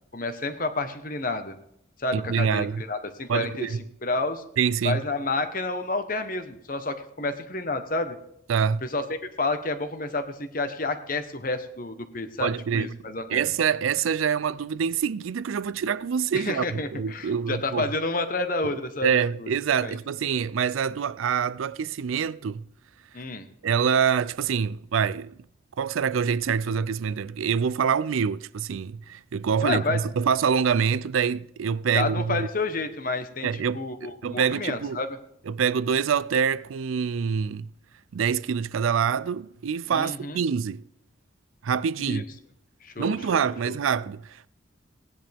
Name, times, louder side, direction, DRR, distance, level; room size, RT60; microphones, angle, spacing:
voice 1, 0.1-1.6 2.0-3.7 4.0-4.4 4.8-8.2 8.8-13.5 16.3-19.5 19.8-20.0 23.1-23.5 29.6-30.0 31.9-35.1 39.9-40.4 42.0-42.2 42.8-43.8, left 2 dB, 45° left, 1.1 m, -30 dB
voice 2, 2.1-2.8 3.3-3.8 4.6-5.0 8.5-8.8 12.4-17.9 18.7-22.7 23.6-25.4 25.8-32.5 33.4-35.0 35.5-37.7 38.1-40.9 41.6-42.2 43.0-44.5, right 7 dB, 85° right, 0.4 m, -26 dB
18.0 x 10.0 x 3.5 m
head